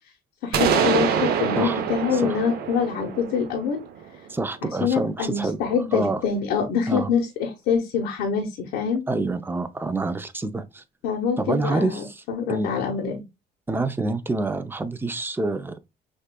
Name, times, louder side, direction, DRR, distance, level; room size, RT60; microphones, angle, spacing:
voice 1, 0.4-3.8 4.6-9.0 11.0-13.2, left 6 dB, 90° left, 0.9 m, -25 dB
sound 1, 0.5-4.3, right 7 dB, 65° right, 0.7 m, -25 dB
voice 2, 4.3-5.6 5.9-6.2 6.9-7.1 9.1-10.8 11.4-12.2 12.5-12.7 13.7-15.8, right 2 dB, 10° right, 0.5 m, -27 dB
6.3 x 2.4 x 2.2 m
cardioid pair, 110°, 17 cm